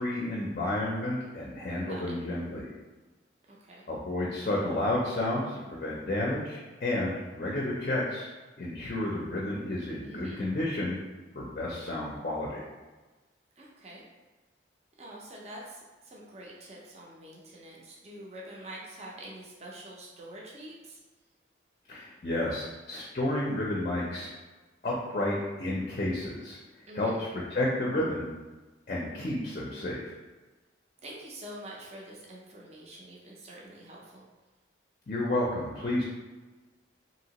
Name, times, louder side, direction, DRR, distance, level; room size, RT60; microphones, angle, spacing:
voice 1, 0.0-2.7 3.9-8.3 8.6-11.0 11.3-12.6 21.9-24.3 24.8-26.6 26.9-28.3 28.9-30.1 35.1-36.0, left 1 dB, 40° left, -4 dB, 0.4 m, -31 dB
voice 2, 10.0-10.4 13.6-14.0 15.0-21.0 26.9-27.2 31.0-34.2, right 1 dB, 35° right, -3 dB, 0.5 m, -46 dB
2.9 x 2.8 x 2.9 m, 1.2 s
head